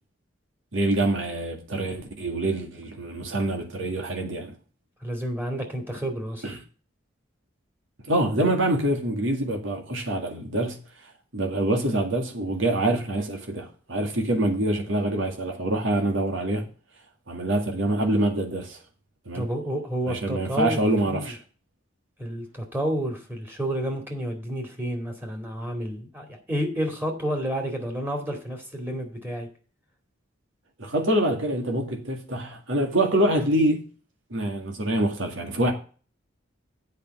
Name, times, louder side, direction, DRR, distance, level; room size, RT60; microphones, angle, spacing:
voice 1, 0.7-4.5 6.4-6.6 8.0-10.8 11.3-16.6 17.3-18.8 19.3-19.4 20.1-21.4 30.8-33.8 34.3-35.7, right 1 dB, 80° right, 2.0 m, -25 dB
voice 2, 5.0-6.5 19.3-21.3 22.2-29.5, right 1 dB, 10° right, 2.3 m, -30 dB
8.3 x 5.3 x 7.7 m
head